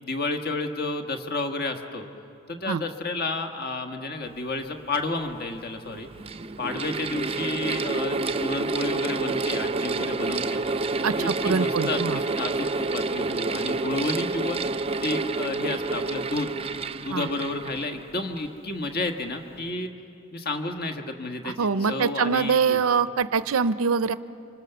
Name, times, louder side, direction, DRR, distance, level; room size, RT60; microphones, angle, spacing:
voice 1, 0.0-2.1 2.5-6.1 6.6-10.6 11.2-12.0 12.4-14.6 15.0-16.5 17.0-19.9 20.3-22.8, left 2 dB, 45° left, 5 dB, 1.5 m, -31 dB
Mechanical fan, 4.9-5.0 5.9-18.5, right 3 dB, 30° right, 0.5 m, -29 dB
voice 2, 11.0-12.2 17.1-17.3 21.4-24.1, right 5 dB, 80° right, 13 dB, 0.6 m, -24 dB
30.0 x 25.5 x 6.8 m, 2.7 s
head